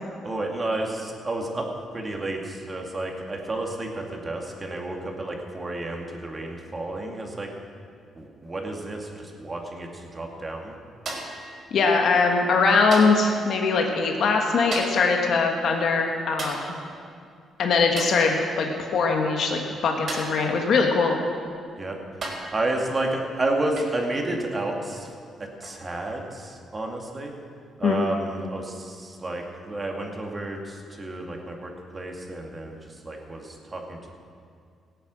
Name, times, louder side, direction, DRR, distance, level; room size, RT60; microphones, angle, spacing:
voice 1, 0.2-1.7 1.9-7.5 8.2-10.7 21.8-22.0 22.5-25.1 25.6-27.3 27.8-32.8 33.0-34.1, right 2 dB, 30° right, 1 dB, 2.3 m, -31 dB
sound 1, 11.1-11.5 12.9-13.3 14.7-15.1 16.4-16.7 18.0-18.3 20.1-20.4 21.5-21.6 22.2-22.6 23.8-24.0 25.6-25.8, right 2 dB, 55° right, 3.7 m, -34 dB
voice 2, 11.7-16.6 17.6-21.2 27.8-28.0, left 4 dB, 65° left, 2 dB, 1.4 m, -22 dB
17.5 x 8.5 x 6.3 m, 2.3 s
cardioid pair, 90°, 0 cm